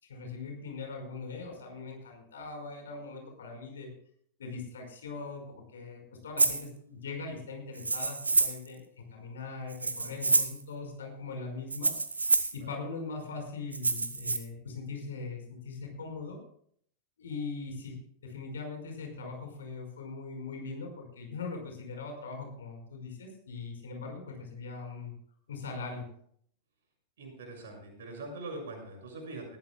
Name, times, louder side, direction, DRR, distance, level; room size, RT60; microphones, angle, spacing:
voice 1, 0.0-3.9 4.4-16.4 17.2-18.0 18.2-25.1 25.5-26.1, left 4 dB, 65° left, 3 dB, 4.9 m, -41 dB
Rattle (instrument), 6.4-6.6 7.8-8.7 9.7-10.6 11.7-12.6 13.7-14.4, right 3 dB, 80° right, 1.2 m, -27 dB
voice 2, 27.2-29.4, right 2 dB, 60° right, 2 dB, 6.1 m, -42 dB
20.0 x 15.0 x 2.3 m, 0.62 s
figure-of-eight pair, 90°, 0 cm